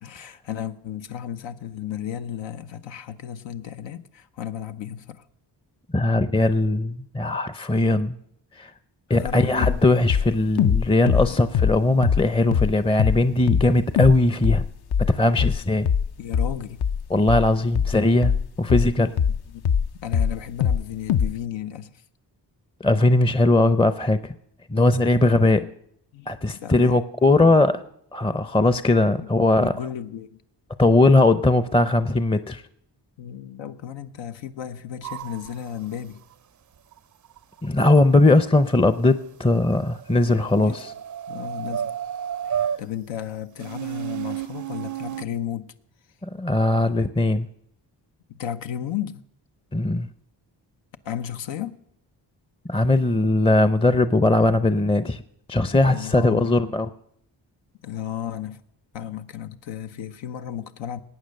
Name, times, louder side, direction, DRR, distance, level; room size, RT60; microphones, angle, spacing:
voice 1, 0.0-5.3 9.1-9.8 10.9-11.4 16.2-16.8 19.5-19.6 20.0-22.0 25.2-25.4 26.1-27.0 27.3-27.6 29.2-29.3 29.6-30.4 33.2-36.2 40.6-40.8 41.3-41.9 42.4-45.7 48.3-49.2 51.0-51.8 55.9-56.6 57.8-58.6 58.9-61.0, left 10 dB, 90° left, 0.8 m, -34 dB
voice 2, 5.9-8.2 8.6-8.7 9.1-14.6 15.1-15.9 17.1-19.1 22.8-24.3 24.7-25.7 26.3-27.8 28.1-29.7 30.8-32.6 37.6-40.9 46.2-47.5 49.7-50.1 52.7-55.2 55.5-56.9, left 2 dB, 15° left, 0.5 m, -19 dB
sound 1, 9.3-9.4 9.6-9.8 10.1-12.3 12.5-12.7 13.0-13.2 13.5-13.7 14.0-14.2 14.4-19.9 20.1-20.8 21.1-21.3, left 7 dB, 60° left, 0.6 m, -21 dB
sound 2, 35.0-35.6 36.9-37.0 37.2-38.1 38.8-39.0 39.8-42.8 43.6-45.2, right 10 dB, 45° right, 0.4 m, -31 dB
18.5 x 8.7 x 6.4 m
cardioid pair, 75°, 44 cm